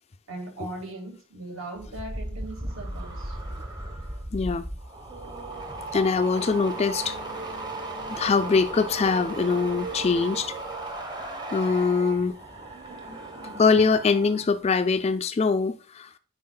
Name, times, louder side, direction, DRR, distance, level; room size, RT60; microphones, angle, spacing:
voice 1, 0.3-3.4, right 2 dB, 60° right, 1.9 m, -39 dB
sound 1, 1.8-14.4 14.7-15.1, right 2 dB, 20° right, 0.9 m, -36 dB
voice 2, 4.3-4.6 5.9-7.2 8.1-10.6 11.5-12.4 13.6-16.1, left 4 dB, 30° left, 0.3 m, -23 dB
9.4 x 4.5 x 2.3 m
head